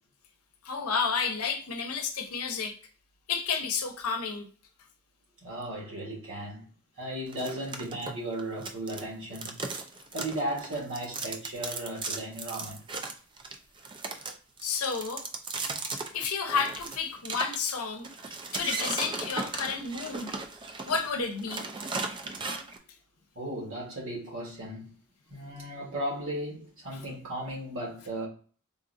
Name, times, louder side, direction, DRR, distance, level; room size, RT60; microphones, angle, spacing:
voice 1, 0.6-2.8 3.3-4.5 14.6-15.2 16.1-20.4 20.9-21.6, left 5 dB, 70° left, 0.7 m, -31 dB
voice 2, 5.4-6.7 7.0-9.6 10.1-12.8 23.3-24.9 25.3-28.3, right 1 dB, 60° right, 1.4 m, -36 dB
sound 1, 7.3-9.0 9.3-22.8, right 3 dB, 20° right, 0.3 m, -36 dB
3.8 x 2.4 x 2.5 m
head